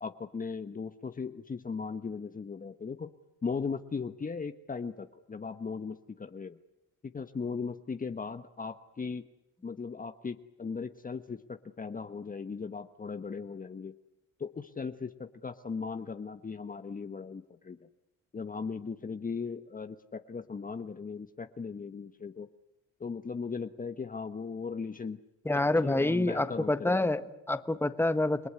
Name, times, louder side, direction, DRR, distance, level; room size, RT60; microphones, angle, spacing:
voice 1, 0.0-3.1 3.4-6.6 7.0-9.3 9.6-13.9 14.4-17.9 18.3-22.5 23.0-25.2 25.8-27.1, left 5 dB, 30° left, 9 dB, 1.1 m, -38 dB
voice 2, 25.4-28.5, left 2 dB, 10° left, 11 dB, 1.4 m, -27 dB
30.0 x 19.0 x 9.7 m, 0.87 s
cardioid pair, 90°, 30 cm